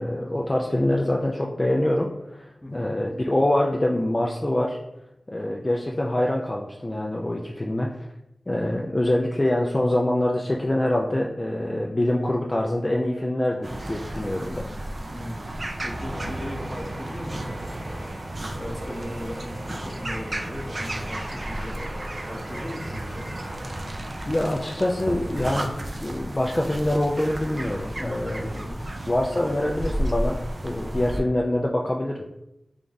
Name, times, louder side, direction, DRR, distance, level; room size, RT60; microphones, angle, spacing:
voice 1, 0.0-4.8 5.3-7.9 8.5-14.6 24.3-25.7 26.0-28.7 29.1-32.2, left 1 dB, 30° left, -1 dB, 0.4 m, -25 dB
voice 2, 2.6-2.9 15.1-15.5 15.8-17.8 18.4-23.3 28.5-28.8, left 1 dB, 10° left, 1 dB, 0.7 m, -38 dB
sound 1, 13.6-31.2, right 1 dB, 45° right, 0.5 m, -33 dB
sound 2, 16.1-24.4, equal, 75° right, 0.8 m, -43 dB
3.4 x 2.5 x 3.9 m, 0.86 s
wide cardioid pair, 55°, 0 cm